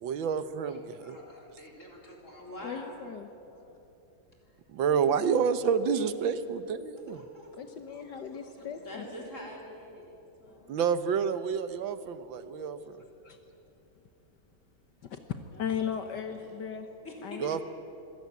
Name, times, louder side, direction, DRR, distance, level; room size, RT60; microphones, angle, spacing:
voice 1, 0.0-1.2 4.7-7.2 10.7-12.9 17.4-17.6, right 6 dB, 80° right, 12 dB, 1.7 m, -29 dB
voice 2, 0.6-3.0 3.5-3.8 4.4-4.6 5.9-6.0 7.0-10.7 11.9-12.0 15.5-15.8 16.3-16.6 17.0-17.6, left 1 dB, 40° left, 0 dB, 4.4 m, -47 dB
voice 3, 2.6-3.3 7.6-9.0 12.6-13.4 15.0-16.9 17.2-17.6, left 8 dB, 65° left, 7 dB, 1.6 m, -37 dB
25.0 x 17.0 x 9.4 m, 2.9 s
omnidirectional pair, 2.1 m